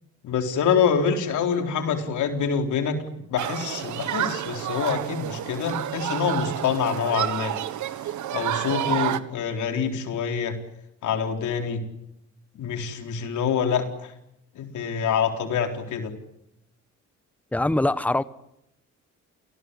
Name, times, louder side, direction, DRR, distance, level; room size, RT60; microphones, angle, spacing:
voice 1, 0.2-3.0 3.3-7.5 8.3-10.6 11.0-11.8 12.6-14.1 14.6-16.1, left 6 dB, 75° left, 5 dB, 4.2 m, -26 dB
Human group actions, 3.4-9.2, right 12 dB, 75° right, 1.6 m, -29 dB
voice 2, 17.5-18.2, left 1 dB, 5° left, 15 dB, 1.1 m, -22 dB
28.5 x 19.0 x 9.9 m, 0.80 s
cardioid pair, 90°, 30 cm